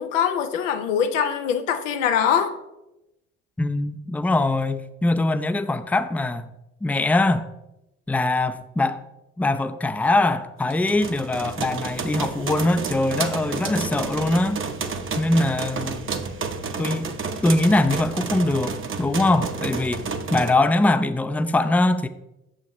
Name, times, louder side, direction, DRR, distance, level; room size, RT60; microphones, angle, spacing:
voice 1, 0.0-2.5, left 8 dB, 90° left, 0.7 m, -23 dB
voice 2, 3.6-6.5 6.8-7.5 8.1-9.0 9.4-14.6 15.2-16.0 16.8-17.2 17.4-22.1, left 2 dB, 5° left, 0.4 m, -22 dB
sound 1, 10.7-20.5, right 5 dB, 35° right, 0.9 m, -30 dB
8.5 x 6.5 x 3.0 m
hypercardioid pair, 55°, 36 cm